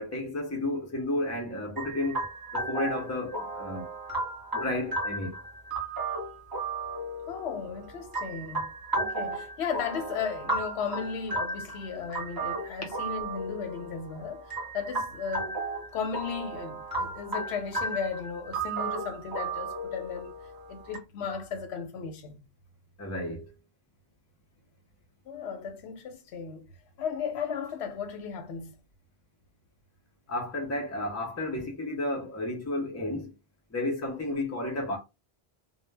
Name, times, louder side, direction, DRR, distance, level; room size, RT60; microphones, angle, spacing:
voice 1, 0.0-2.3 2.5-3.9 4.5-5.4 23.0-23.5 30.3-33.3 33.7-35.0, left 1 dB, 20° left, 0.5 m, -32 dB
sound 1, 1.8-21.0, right 2 dB, 25° right, 0.7 m, -35 dB
voice 2, 7.3-8.7 9.0-15.6 15.9-20.3 20.7-22.4 25.3-26.7 27.0-28.7, left 6 dB, 90° left, 0.9 m, -35 dB
2.1 x 2.0 x 3.2 m
omnidirectional pair, 1.1 m